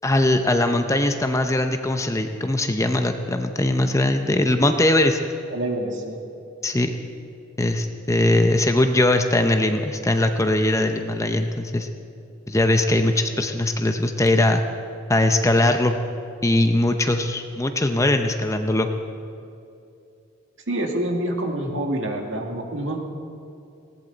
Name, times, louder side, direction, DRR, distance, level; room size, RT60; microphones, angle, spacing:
voice 1, 0.0-5.2 6.6-6.9 7.6-11.9 12.5-14.6 15.1-16.0 16.4-18.9, left 1 dB, 15° left, 6 dB, 0.7 m, -20 dB
voice 2, 5.5-6.2 20.7-23.0, right 1 dB, 65° right, 2 dB, 2.1 m, -27 dB
19.5 x 18.0 x 4.0 m, 2.6 s
head